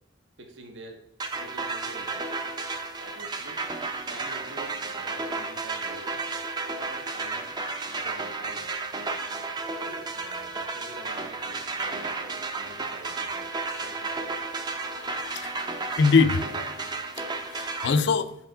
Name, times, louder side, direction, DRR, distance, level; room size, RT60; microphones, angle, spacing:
voice 1, 0.4-1.0 1.3-2.4 3.0-3.6 4.1-6.3 6.8-7.5 7.9-8.7 9.7-13.5 13.7-14.5, right 2 dB, 65° right, 3 dB, 0.8 m, -47 dB
sound 1, 1.2-17.9, right 3 dB, 20° right, 0.5 m, -33 dB
voice 2, 14.7-18.4, left 4 dB, 60° left, 12 dB, 0.4 m, -25 dB
5.4 x 4.5 x 3.8 m, 0.84 s
head